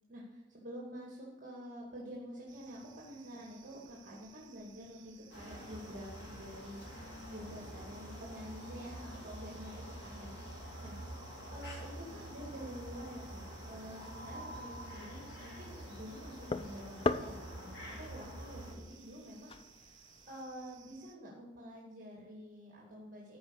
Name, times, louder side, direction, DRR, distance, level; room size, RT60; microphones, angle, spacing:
voice 1, 0.1-11.0 11.5-23.4, equal, 45° right, -4 dB, 2.2 m, -48 dB
sound 1, 2.5-21.2, right 8 dB, 80° right, 1.0 m, -61 dB
sound 2, 5.3-18.7, equal, 65° left, 2.5 m, -47 dB
sound 3, 15.4-20.5, left 3 dB, 30° left, 0.4 m, -41 dB
13.5 x 5.3 x 6.4 m, 1.1 s
head